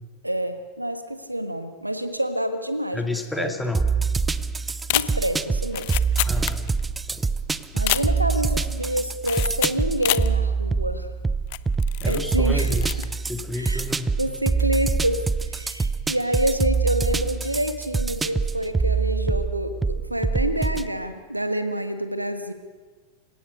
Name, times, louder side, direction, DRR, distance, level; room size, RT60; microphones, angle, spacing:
voice 1, 0.2-3.1 3.4-3.5 4.9-6.0 7.7-11.1 12.0-12.7 13.5-13.8 14.2-15.2 15.4-22.5, right 1 dB, 85° right, 9 dB, 1.6 m, -27 dB
voice 2, 2.9-3.9 6.2-6.6 7.1-7.2 12.0-13.0 13.3-14.1, left 2 dB, 5° left, 6 dB, 2.2 m, -30 dB
sound 1, 3.7-20.9, right 4 dB, 10° right, 0.6 m, -25 dB
sound 2, 4.8-7.0 7.2-7.3 7.7-8.5 9.2-10.3 10.8-10.9 11.5-12.3 12.5-13.1 13.4-13.7, left 21 dB, 50° left, 0.6 m, -28 dB
28.5 x 17.0 x 6.5 m, 1.4 s
figure-of-eight pair, 90°, 0 cm